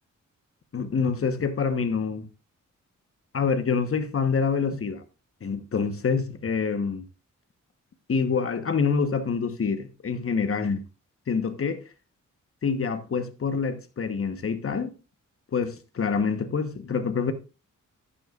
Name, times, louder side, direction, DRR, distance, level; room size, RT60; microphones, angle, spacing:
voice 1, 0.7-2.3 3.3-5.0 5.4-7.1 8.1-10.8 11.3-11.8 12.6-14.9 15.5-17.3, left 5 dB, 45° left, 1.1 m, -26 dB
12.0 x 9.5 x 2.4 m
wide cardioid pair, 105°, 30 cm